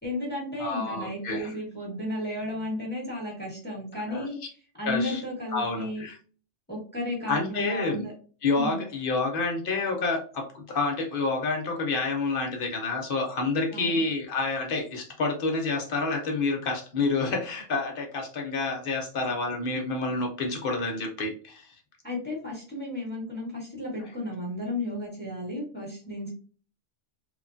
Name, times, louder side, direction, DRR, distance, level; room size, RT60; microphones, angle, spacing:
voice 1, 0.0-4.4 4.8-6.0 6.7-8.1 8.5-8.8 13.7-14.0 22.0-26.3, left 1 dB, 10° left, -4 dB, 1.1 m, -33 dB
voice 2, 0.6-1.5 4.1-4.3 4.9-5.2 5.5-6.2 7.3-8.0 8.4-21.7, left 3 dB, 55° left, 3 dB, 0.7 m, -28 dB
3.0 x 2.2 x 2.5 m, 0.41 s
omnidirectional pair, 1.3 m